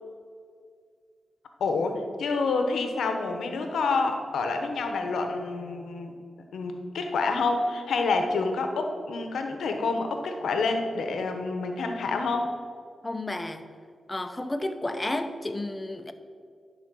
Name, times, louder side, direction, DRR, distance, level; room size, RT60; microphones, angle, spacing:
voice 1, 1.6-6.1 6.5-12.5, left 3 dB, 90° left, 5 dB, 0.9 m, -28 dB
voice 2, 13.0-13.6 14.1-16.1, left 1 dB, 25° left, 9 dB, 0.7 m, -31 dB
10.5 x 4.1 x 6.1 m, 2.1 s
cardioid pair, 55°, 0 cm